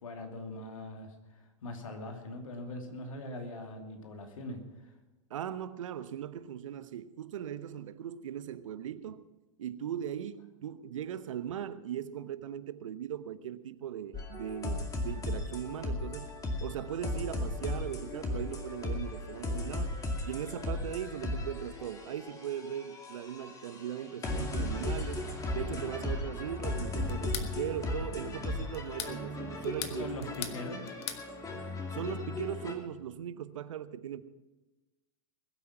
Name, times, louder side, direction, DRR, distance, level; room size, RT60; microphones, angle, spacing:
voice 1, 0.0-4.9 25.6-25.8 29.9-30.9, left 1 dB, 75° left, 2.7 m, -42 dB
voice 2, 5.3-9.3 9.6-16.3 16.6-30.1 31.9-34.2, right 10 dB, 70° right, 0.9 m, -39 dB
sound 1, 14.1-32.7, left 2 dB, 20° left, 2.3 m, -36 dB
sound 2, 27.1-27.5 28.7-29.2 29.6-30.6 30.9-31.3, left 10 dB, 35° left, 1.4 m, -39 dB
21.5 x 8.4 x 5.9 m
hypercardioid pair, 110°, 17 cm